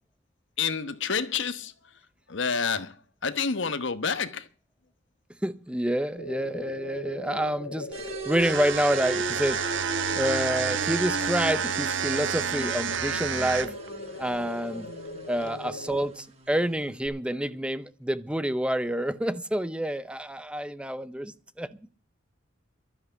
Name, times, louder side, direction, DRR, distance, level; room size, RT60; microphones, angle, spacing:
voice 1, 0.6-1.7 2.3-3.0 3.2-4.5, left 5 dB, 65° left, 1.1 m, -28 dB
voice 2, 5.4-9.6 10.1-13.7 14.2-14.9 15.3-21.8, right 1 dB, 5° right, 0.6 m, -28 dB
sound 1, 6.2-16.1, left 2 dB, 85° left, 2.3 m, -40 dB
sound 2, 7.9-17.1, right 1 dB, 30° right, 5.3 m, -38 dB
sound 3, 8.3-13.9, right 8 dB, 65° right, 0.8 m, -29 dB
12.5 x 10.5 x 6.9 m
head